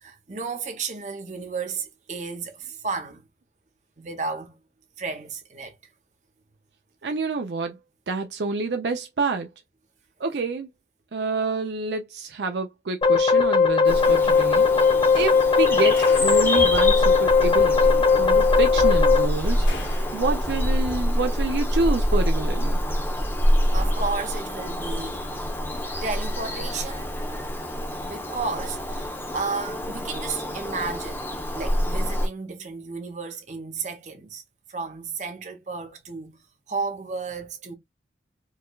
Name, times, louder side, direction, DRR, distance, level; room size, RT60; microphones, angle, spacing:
voice 1, 0.0-3.3 4.0-4.6 5.0-5.8 23.7-25.3 26.0-27.2 28.0-31.3 31.5-34.4 34.7-36.4 36.7-37.7, right 4 dB, 40° right, 0.9 m, -33 dB
voice 2, 7.0-7.8 8.1-9.5 10.2-10.7 11.1-19.6 20.1-22.8, right 3 dB, 70° right, 0.5 m, -28 dB
sound 1, 13.0-19.2, left 5 dB, 30° left, 0.5 m, -18 dB
Bird vocalization bird call bird song, 13.8-32.3, equal, 10° left, 0.8 m, -26 dB
sound 2, 14.9-20.8, left 2 dB, 90° left, 1.9 m, -43 dB
4.7 x 2.3 x 2.3 m
head